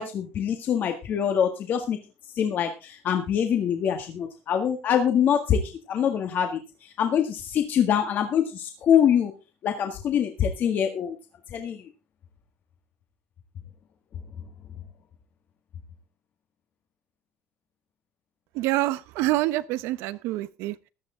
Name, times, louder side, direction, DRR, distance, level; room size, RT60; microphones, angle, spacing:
voice 1, 0.0-2.0 2.2-9.3 9.6-11.2 11.5-11.9, left 8 dB, 45° left, 1.6 m, -24 dB
voice 2, 18.5-20.9, right 17 dB, 80° right, 1.0 m, -27 dB
15.0 x 11.5 x 3.8 m
cardioid pair, 155°, 4 cm